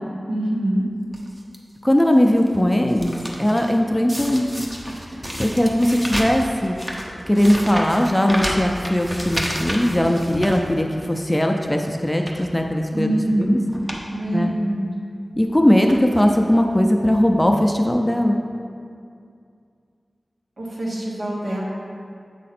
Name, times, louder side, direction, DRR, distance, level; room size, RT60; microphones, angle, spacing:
voice 1, 0.3-0.9 12.9-13.5 14.1-14.8 20.6-21.6, right 1 dB, 70° right, -4 dB, 1.5 m, -24 dB
sound 1, 1.1-1.6 2.1-3.7 4.1-11.2 11.6-11.7 12.1-12.5 13.3-13.4 13.7-14.0 14.4-14.5 15.3-15.5 15.9-16.4 17.1-17.2 17.4-17.5, equal, 15° right, 0.8 m, -31 dB
voice 2, 1.8-4.7 5.4-6.8 7.3-13.1 13.4-13.6 14.3-14.5 15.4-18.4, equal, 10° left, 3 dB, 0.5 m, -19 dB
7.5 x 5.0 x 4.2 m, 2.3 s
wide cardioid pair, 85°, 0 cm